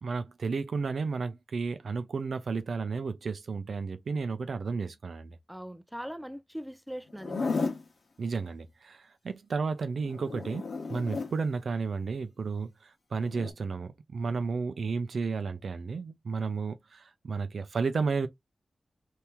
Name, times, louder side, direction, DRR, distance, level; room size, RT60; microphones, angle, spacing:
voice 1, 0.0-5.4 8.2-18.3, right 4 dB, 80° right, 0.6 m, -32 dB
voice 2, 5.5-7.7, equal, 5° right, 0.5 m, -41 dB
Zipper (clothing), 7.1-7.9 10.0-11.3 13.2-13.5, left 4 dB, 70° left, 1.1 m, -33 dB
2.9 x 2.8 x 3.4 m
cardioid pair, 55°, 0 cm